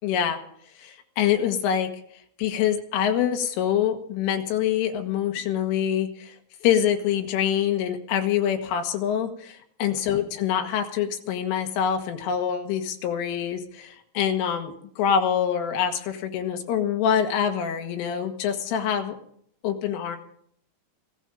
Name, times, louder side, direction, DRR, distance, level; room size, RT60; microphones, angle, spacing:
voice 1, 0.0-0.4 0.8-1.9 2.4-6.4 6.6-19.2 19.6-20.2, left 9 dB, 80° left, 5 dB, 3.9 m, -25 dB
16.5 x 16.0 x 5.1 m, 0.66 s
omnidirectional pair, 5.8 m